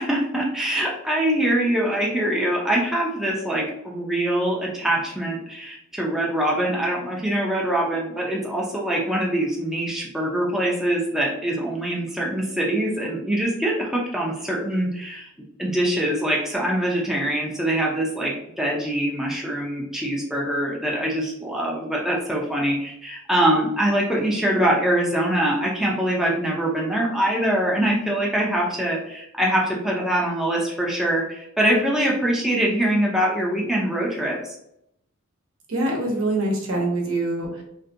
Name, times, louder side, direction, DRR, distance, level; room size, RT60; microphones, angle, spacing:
voice 1, 0.0-15.3 15.6-34.6, right 1 dB, ahead, -4 dB, 0.4 m, -23 dB
voice 2, 35.7-37.6, right 2 dB, 70° right, 0 dB, 0.8 m, -24 dB
2.6 x 2.5 x 2.5 m, 0.76 s
head